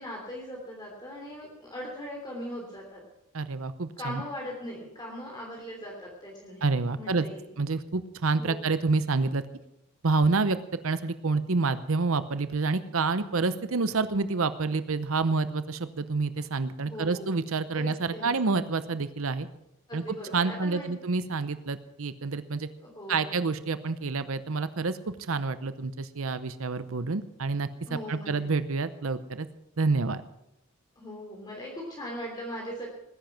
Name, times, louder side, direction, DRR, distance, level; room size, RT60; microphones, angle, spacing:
voice 1, 0.0-3.0 4.0-6.6 6.9-7.5 8.4-8.6 16.8-17.4 17.7-18.5 19.9-21.0 22.8-23.4 27.9-28.5 31.0-32.9, equal, 20° left, -2 dB, 3.1 m, -40 dB
voice 2, 3.3-4.2 6.6-7.3 7.6-9.4 10.0-10.6 10.8-19.5 19.9-20.0 20.3-22.7 23.1-25.0 25.3-27.7 28.1-29.5 29.8-30.2, right 3 dB, 70° right, 12 dB, 0.8 m, -28 dB
19.0 x 10.5 x 5.9 m, 0.83 s
head